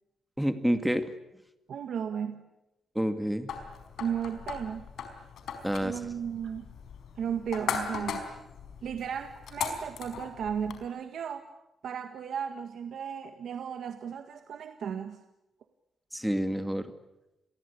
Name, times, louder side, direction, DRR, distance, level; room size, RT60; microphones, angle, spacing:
voice 1, 0.4-1.1 3.0-3.5 5.6-6.0 16.1-16.9, equal, 5° right, 8 dB, 2.2 m, -28 dB
voice 2, 1.7-2.5 4.0-4.9 5.8-6.7 7.2-8.3 8.8-11.4 11.8-15.2, right 8 dB, 70° right, 7 dB, 1.8 m, -35 dB
sound 1, 3.5-10.8, left 6 dB, 80° left, 4.9 m, -38 dB
29.5 x 23.0 x 8.6 m, 0.94 s
wide cardioid pair, 135°, 0 cm